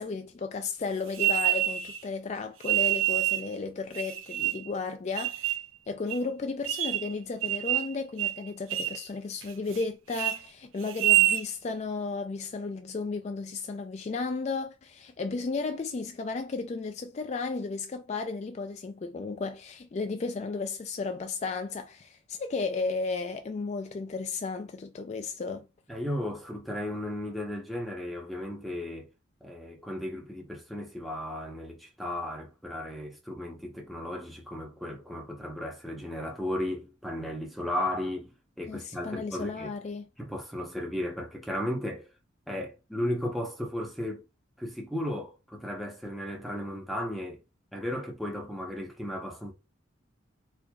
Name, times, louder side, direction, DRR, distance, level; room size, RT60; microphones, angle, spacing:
voice 1, 0.0-5.5 5.9-25.7 38.7-40.1, left 4 dB, 35° left, 0.3 m, -34 dB
sound 1, 1.1-2.0 2.6-3.5 3.9-4.7 5.2-5.6 6.1-6.2 6.6-7.1 7.4-7.9 8.2-8.4 8.7-9.0 9.4-9.8 10.1-10.4 10.9-11.4, right 14 dB, 75° right, 0.4 m, -26 dB
voice 2, 25.9-29.1 29.4-38.3 38.6-39.7 40.2-42.1 42.5-44.2 44.6-47.4 47.7-49.5, left 1 dB, ahead, 0.8 m, -35 dB
4.4 x 2.6 x 2.3 m
head